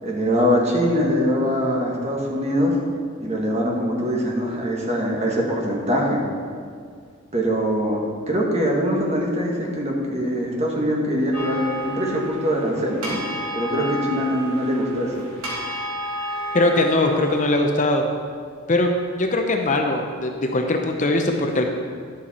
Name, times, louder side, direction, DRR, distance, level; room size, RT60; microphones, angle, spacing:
voice 1, 0.0-2.8 3.2-6.2 7.3-13.2 13.5-15.3, equal, 30° right, -2 dB, 1.6 m, -23 dB
sound 1, 11.3-17.6, equal, 75° right, 2.8 m, -31 dB
voice 2, 16.5-18.1 18.7-18.9 19.2-21.6, left 2 dB, 35° left, 3 dB, 0.7 m, -21 dB
11.0 x 7.6 x 4.3 m, 2.1 s
head